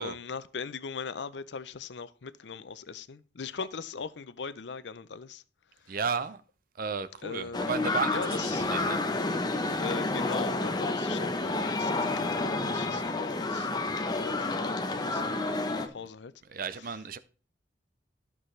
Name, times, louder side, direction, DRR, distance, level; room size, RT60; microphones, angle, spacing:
voice 1, 0.0-5.4 5.9-6.0 7.2-7.7 8.1-8.7 9.8-13.7 14.2-16.3, left 5 dB, 80° left, 0.6 m, -40 dB
voice 2, 5.9-6.4 6.8-9.1 16.5-17.2, right 5 dB, 55° right, 0.6 m, -34 dB
sound 1, 7.5-15.9, left 2 dB, 25° left, 0.8 m, -30 dB
13.5 x 6.0 x 3.2 m
head